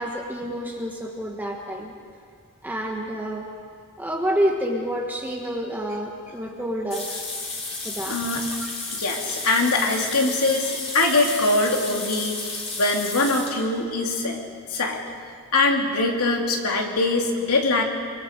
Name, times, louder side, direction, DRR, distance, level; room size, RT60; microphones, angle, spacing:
voice 1, 0.0-1.9 2.6-3.5 4.0-7.2 7.8-8.2 8.6-8.7, equal, 10° right, 0 dB, 1.4 m, -28 dB
sound 1, 6.9-13.6, left 3 dB, 30° left, 4.0 m, -32 dB
voice 2, 8.1-8.4 8.9-14.4 14.7-15.0 15.5-17.8, left 2 dB, 80° left, 1 dB, 2.9 m, -23 dB
24.5 x 24.5 x 5.2 m, 2.1 s
head